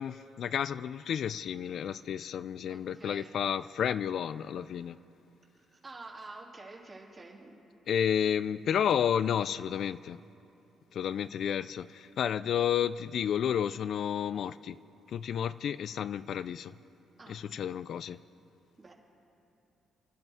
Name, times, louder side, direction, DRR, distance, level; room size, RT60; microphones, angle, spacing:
voice 1, 0.0-5.0 7.9-10.2 10.9-14.8 15.1-16.7 17.3-18.2, left 9 dB, 65° left, 15 dB, 0.3 m, -31 dB
voice 2, 2.7-3.4 5.5-7.6 17.2-17.6 18.8-18.9, right 2 dB, 30° right, -2 dB, 2.9 m, -49 dB
29.0 x 11.5 x 3.6 m, 2.9 s
cardioid pair, 90°, 0 cm